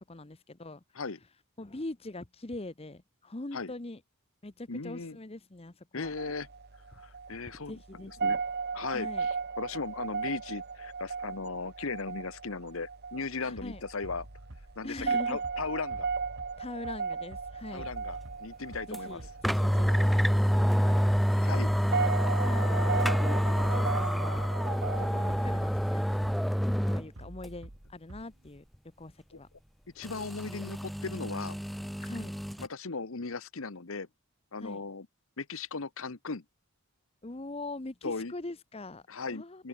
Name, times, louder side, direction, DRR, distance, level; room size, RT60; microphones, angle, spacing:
voice 1, 0.1-0.8 1.6-4.0 4.4-6.1 7.7-8.4 8.9-9.3 13.4-13.8 14.8-15.4 16.6-17.9 18.9-21.2 22.4-24.5 24.9-26.3 26.9-28.6 29.0-29.5 32.0-32.3 34.6-34.8 37.2-39.0 39.3-39.7, left 2 dB, 25° left, 0.9 m, -42 dB
voice 2, 4.7-5.2 5.9-6.5 7.0-7.8 8.1-8.4 8.7-14.3 14.8-16.1 17.7-19.2 21.3-21.7 29.9-31.6 32.6-34.1 34.5-35.1 35.4-36.4 38.0-38.3 39.1-39.7, left 4 dB, 65° left, 1.1 m, -37 dB
sound 1, 6.0-25.7, right 5 dB, 45° right, 0.9 m, -36 dB
Bass drum, 13.6-28.6, right 1 dB, 65° right, 2.0 m, -48 dB
sound 2, 18.9-19.0 19.4-27.0 27.4-27.5 30.0-32.7, equal, ahead, 0.4 m, -27 dB
open air
head